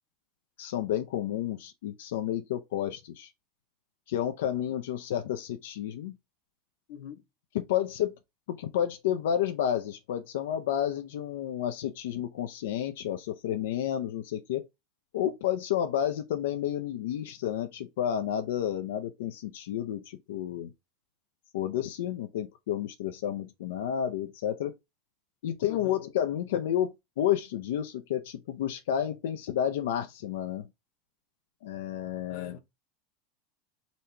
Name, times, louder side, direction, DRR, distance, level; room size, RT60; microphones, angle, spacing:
voice 1, 0.6-3.3 4.1-6.2 7.5-8.1 8.5-14.6 15.1-20.7 21.5-24.7 25.4-30.7 31.6-32.6, left 10 dB, 80° left, 0.6 m, -31 dB
voice 2, 6.9-7.2 25.7-26.1 32.3-32.6, left 8 dB, 45° left, 0.9 m, -44 dB
4.1 x 2.9 x 3.3 m
supercardioid pair, 175°, 0 cm